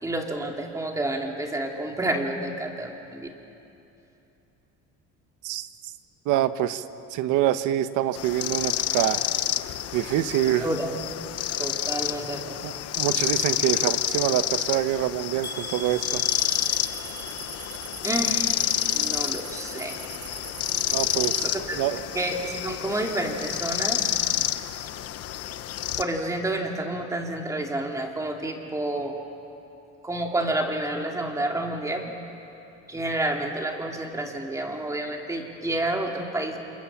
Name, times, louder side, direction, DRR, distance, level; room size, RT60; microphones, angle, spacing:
voice 1, 0.0-3.3 10.4-10.9 11.6-12.6 18.0-18.6 18.9-20.0 20.9-21.0 21.4-21.8 22.1-24.2 26.0-29.2 30.0-32.0 32.9-36.6, right 1 dB, 10° right, 2 dB, 2.4 m, -29 dB
voice 2, 5.4-5.9 6.2-6.8 7.1-9.3 9.9-10.7 12.6-16.2 20.9-22.0, right 12 dB, 75° right, 12 dB, 1.1 m, -26 dB
sound 1, 8.1-26.0, left 12 dB, 50° left, 1.0 m, -29 dB
sound 2, 15.4-19.4 19.7-20.3 20.8-20.9 21.3-21.4, right 1 dB, 15° left, 2.7 m, -42 dB
sound 3, 16.3-21.4, right 6 dB, 40° right, 2.4 m, -42 dB
29.0 x 27.0 x 7.3 m, 2.9 s
cardioid pair, 165°, 31 cm